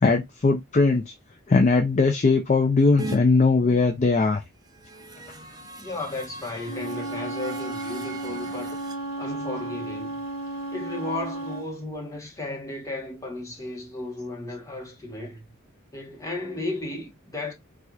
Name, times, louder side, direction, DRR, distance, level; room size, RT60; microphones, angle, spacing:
voice 1, 0.0-1.1 1.5-4.4, left 3 dB, 35° left, 0.4 m, -20 dB
sound 1, 3.0-3.2 4.6-8.9, right 2 dB, 20° right, 0.5 m, -40 dB
voice 2, 5.8-8.7 9.2-10.2 10.7-15.5 15.9-17.5, left 2 dB, 15° left, 1.1 m, -34 dB
Wind instrument woodwind instrument, 6.6-11.7, right 2 dB, 65° left, 1.0 m, -33 dB
4.3 x 2.4 x 2.3 m
head